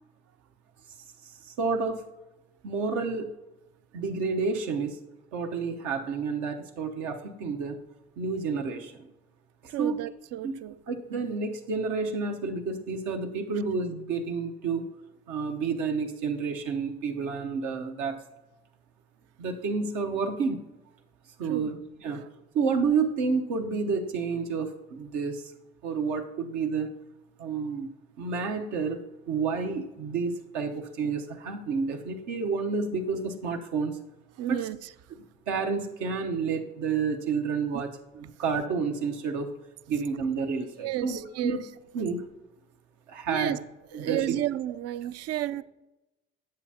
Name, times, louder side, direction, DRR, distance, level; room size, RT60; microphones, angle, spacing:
voice 1, 1.4-2.0 2.6-3.3 3.9-5.0 5.3-7.8 8.2-9.1 9.8-10.0 10.4-10.6 10.9-14.8 15.3-18.2 19.4-20.6 21.4-22.2 22.5-25.4 25.8-26.9 27.4-27.9 28.2-34.0 34.5-34.6 35.5-39.5 39.9-41.6 41.9-42.2 43.1-43.6 43.9-44.4, right 5 dB, 75° right, 1.0 m, -30 dB
voice 2, 9.7-10.8 21.4-21.7 22.1-22.3 34.4-34.8 37.7-37.8 40.8-41.6 43.3-43.6 43.9-45.6, right 13 dB, 60° right, 0.4 m, -32 dB
9.5 x 7.5 x 2.8 m
hypercardioid pair, 60°, 29 cm